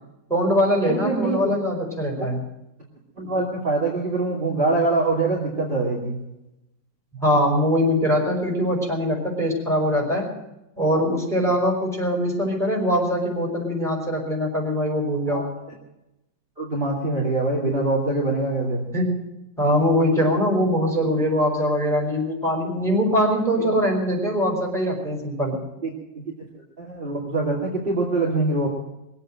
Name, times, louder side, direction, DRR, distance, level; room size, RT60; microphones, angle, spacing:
voice 1, 0.3-2.4 7.2-10.3 10.8-15.4 18.9-19.2 19.6-25.6, equal, ahead, -1 dB, 4.8 m, -22 dB
voice 2, 0.9-1.5 2.2-2.3 3.2-6.1 15.3-15.4 16.6-18.8 23.6-23.7 25.8-25.9 26.8-28.7, right 2 dB, 30° right, -3 dB, 2.7 m, -24 dB
22.0 x 8.5 x 7.7 m, 0.93 s
omnidirectional pair, 2.0 m